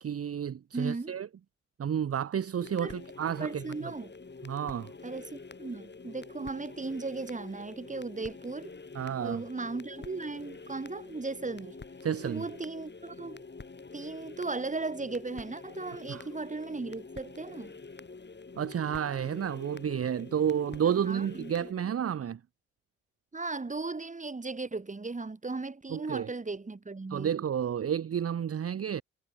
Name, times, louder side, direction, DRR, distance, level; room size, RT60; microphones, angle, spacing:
voice 1, 0.0-1.3 1.8-3.9 4.4-4.9 8.9-9.4 12.0-12.4 16.1-16.2 18.6-22.4 25.9-26.3 27.1-29.0, right 8 dB, 40° right, 1.0 m, -31 dB
voice 2, 0.7-1.1 2.8-3.0 3.4-4.1 5.0-8.7 9.2-11.8 12.2-13.4 13.9-17.7 21.0-21.5 23.3-27.3, right 3 dB, 20° right, 2.1 m, -37 dB
sound 1, 2.6-21.7, left 4 dB, 30° left, 3.8 m, -47 dB
figure-of-eight pair, 40°, 37 cm